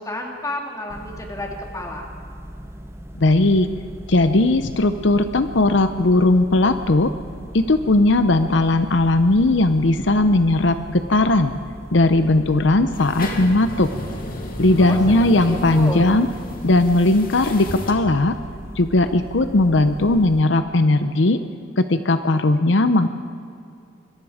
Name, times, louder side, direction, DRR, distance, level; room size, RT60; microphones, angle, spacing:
voice 1, 0.0-2.1 14.8-15.0 15.3-16.1, left 1 dB, 15° left, 1 dB, 2.7 m, -31 dB
sound 1, 0.9-20.4, equal, 15° right, 1.0 m, -38 dB
voice 2, 3.2-3.7 4.1-7.1 7.5-11.5 11.9-13.9 14.6-16.3 16.6-18.3 18.7-21.4 21.8-23.1, left 2 dB, 70° left, 10 dB, 0.8 m, -17 dB
sound 2, 12.9-17.9, left 1 dB, 50° left, 2.6 m, -33 dB
25.5 x 22.0 x 5.0 m, 2.5 s
head